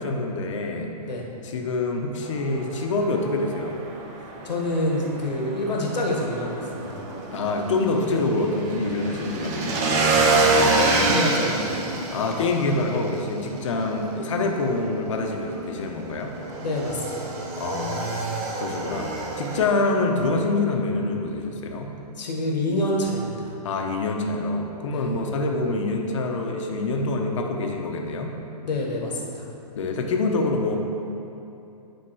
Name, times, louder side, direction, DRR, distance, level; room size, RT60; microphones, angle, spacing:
voice 1, 0.0-0.9 1.4-3.8 7.3-10.4 12.1-16.3 17.6-18.3 18.6-21.9 23.6-28.3 29.7-30.8, left 3 dB, 50° left, 2 dB, 0.8 m, -26 dB
Motorcycle / Engine, 2.2-19.7, right 3 dB, 25° right, 0.5 m, -28 dB
voice 2, 4.4-7.0 10.5-11.7 16.6-17.3 22.1-23.5 24.9-25.1 28.6-29.4, left 1 dB, 90° left, -1 dB, 1.4 m, -27 dB
9.4 x 3.6 x 4.6 m, 2.8 s
hypercardioid pair, 160°, 21 cm